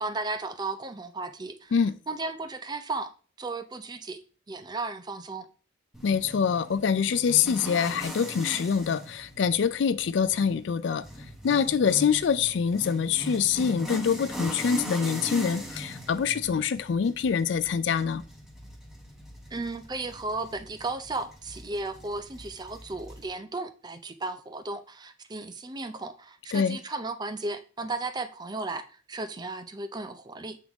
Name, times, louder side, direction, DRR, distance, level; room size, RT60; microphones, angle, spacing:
voice 1, 0.0-1.7 2.1-3.1 3.4-4.2 4.5-5.5 19.5-30.6, right 3 dB, 20° right, 0.5 m, -35 dB
sound 1, 5.9-23.3, equal, 5° right, 1.1 m, -41 dB
voice 2, 6.0-11.0 11.4-18.2 26.5-26.8, left 6 dB, 65° left, 0.4 m, -25 dB
7.8 x 3.7 x 3.5 m
head